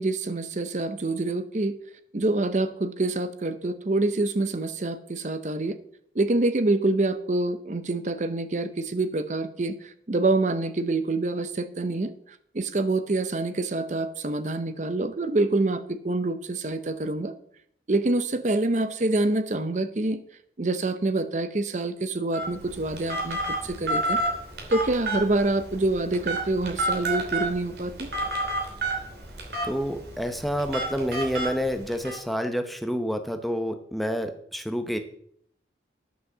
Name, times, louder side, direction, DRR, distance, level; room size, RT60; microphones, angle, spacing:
voice 1, 0.0-1.7 2.1-5.8 6.2-12.1 12.5-17.3 17.9-20.2 20.6-24.2 24.7-28.1, right 2 dB, 40° right, 11 dB, 0.6 m, -26 dB
Telephone, 22.3-32.2, right 1 dB, 60° right, 2.9 m, -30 dB
voice 2, 29.6-35.0, equal, ahead, 7 dB, 0.7 m, -28 dB
11.0 x 6.1 x 6.6 m, 0.67 s
head